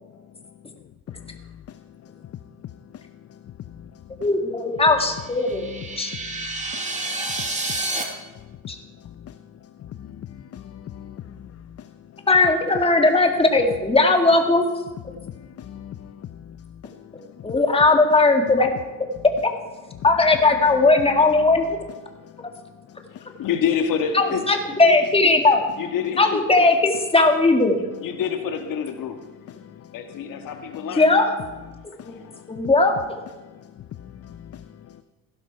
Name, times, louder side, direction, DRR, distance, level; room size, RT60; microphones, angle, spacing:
voice 1, 1.1-2.4 2.9-4.3 5.5-7.3 7.7-8.6 9.0-11.8 15.1-17.5 19.9-20.1 22.1-23.3 28.1-28.2 28.9-31.0 31.7-32.7 33.4-35.0, left 10 dB, 45° left, 0.6 m, -42 dB
voice 2, 4.2-5.7 6.0-6.1 8.7-8.8 12.3-14.6 17.4-18.7 20.0-21.8 24.1-25.6 26.2-27.8 31.0-31.4 32.1-32.2 32.5-32.9, left 3 dB, 15° left, 2.0 m, -18 dB
sound 1, 5.3-8.0, right 2 dB, 20° right, 2.3 m, -29 dB
voice 3, 23.4-24.4 24.7-25.0 25.8-26.2 28.0-29.2 29.9-31.1, left 7 dB, 70° left, 1.6 m, -26 dB
16.0 x 12.0 x 4.6 m
cardioid pair, 105°, 34 cm